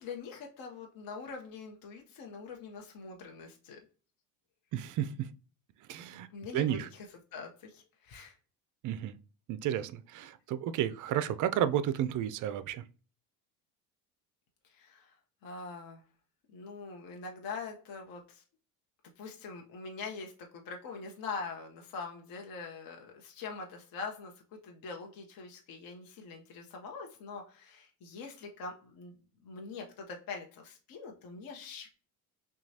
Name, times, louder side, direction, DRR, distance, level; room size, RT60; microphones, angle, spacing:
voice 1, 0.0-3.9 6.3-7.1 7.3-8.4 14.6-15.1 15.4-16.0 16.5-18.4 19.2-29.1 29.4-31.9, left 4 dB, 45° left, 0.9 m, -43 dB
voice 2, 4.7-5.3 5.9-6.3 6.5-6.9 8.8-9.2 9.5-12.9, right 10 dB, 40° right, 0.4 m, -32 dB
5.7 x 2.4 x 2.7 m
supercardioid pair, 80°, 49 cm